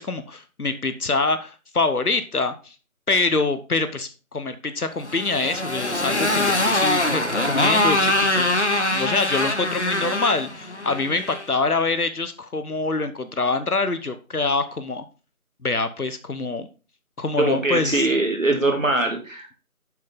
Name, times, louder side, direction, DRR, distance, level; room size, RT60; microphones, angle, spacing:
voice 1, 0.0-2.7 3.1-8.5 8.9-15.0 15.6-16.7 17.2-18.0, left 3 dB, 90° left, 10 dB, 1.1 m, -25 dB
Motorcycle, 5.0-11.5, left 1 dB, 50° left, 1.0 m, -23 dB
voice 2, 17.4-19.6, right 2 dB, 60° right, 3 dB, 2.2 m, -22 dB
7.5 x 5.8 x 3.8 m, 0.35 s
figure-of-eight pair, 170°, 43 cm